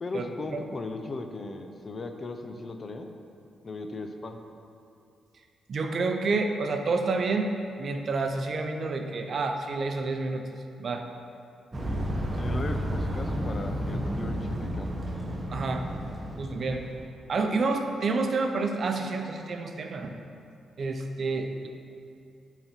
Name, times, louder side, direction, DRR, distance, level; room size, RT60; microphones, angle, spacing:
voice 1, 0.0-3.1 3.6-4.4 12.3-15.0, left 3 dB, 45° left, 6 dB, 0.6 m, -37 dB
voice 2, 5.7-7.5 7.8-10.4 10.8-11.0 15.5-15.8 16.4-16.8 17.3-20.1 20.8-21.7, right 3 dB, 55° right, 5 dB, 0.6 m, -29 dB
sound 1, 11.7-17.1, equal, 25° right, 1.0 m, -32 dB
8.3 x 4.0 x 4.4 m, 2.5 s
cardioid pair, 75°, 0 cm